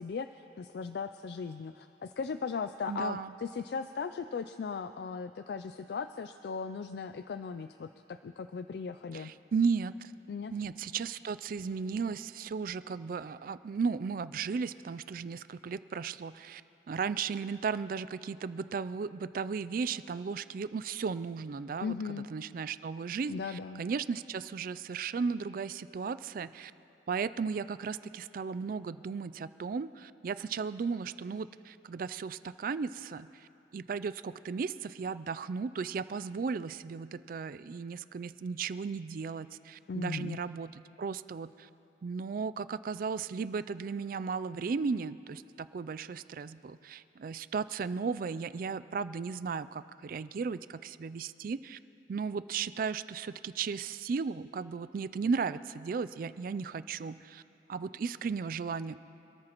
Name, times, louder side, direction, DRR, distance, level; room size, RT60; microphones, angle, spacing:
voice 1, 0.0-9.3 10.3-10.5 21.8-22.3 23.3-23.8 39.9-40.4, left 5 dB, 55° left, 10 dB, 0.3 m, -37 dB
voice 2, 2.9-3.3 9.1-10.1 10.5-16.6 16.9-26.7 27.1-41.7 42.0-51.8 52.1-57.4 57.7-59.0, right 5 dB, 45° right, 15 dB, 0.3 m, -35 dB
26.5 x 13.5 x 3.0 m, 2.8 s
head